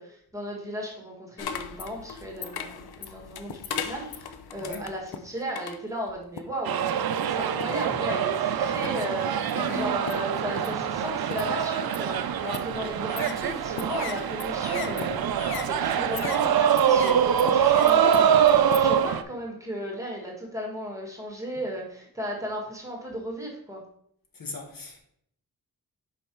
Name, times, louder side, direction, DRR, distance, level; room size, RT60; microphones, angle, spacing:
voice 1, 0.0-6.8 7.3-23.8, equal, 10° right, 1.6 m, -35 dB
sound 1, 1.4-6.7 7.3-7.9 8.6-9.1 9.5-19.1, left 7 dB, 80° left, 0.6 m, -39 dB
sound 2, 6.6-19.2, right 8 dB, 70° right, 0.5 m, -24 dB
voice 2, 7.5-8.0 9.5-10.2 10.7-10.8 15.7-15.8 17.5-17.7 24.3-25.0, left 3 dB, 65° left, 1.3 m, -38 dB
5.4 x 4.9 x 4.4 m
wide cardioid pair, 135°, 37 cm